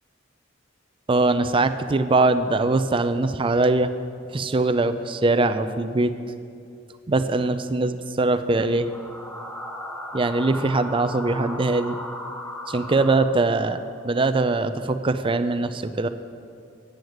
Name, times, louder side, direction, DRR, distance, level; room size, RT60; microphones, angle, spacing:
voice 1, 1.1-3.9 4.3-6.1 7.1-8.9 10.1-12.0 12.7-13.8 14.0-16.1, right 2 dB, 25° right, 11 dB, 0.4 m, -22 dB
sound 1, 8.7-13.8, left 1 dB, 10° left, 0.8 m, -36 dB
8.9 x 7.9 x 7.9 m, 2.5 s
head